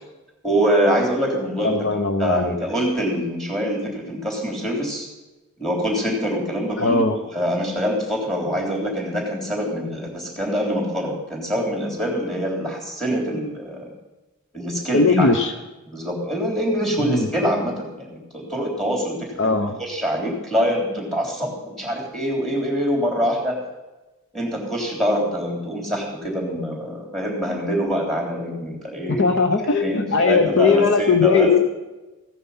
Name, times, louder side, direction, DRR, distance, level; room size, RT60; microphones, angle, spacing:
voice 1, 0.4-1.8 2.2-5.1 5.6-13.9 14.5-15.3 15.9-23.6 24.3-29.2 29.8-31.5, equal, ahead, -1 dB, 3.5 m, -24 dB
voice 2, 1.6-2.5 6.8-7.2 14.9-15.5 17.0-17.3 19.4-19.8 29.2-31.6, left 4 dB, 55° left, 7 dB, 0.8 m, -19 dB
15.5 x 9.6 x 5.7 m, 1.1 s
head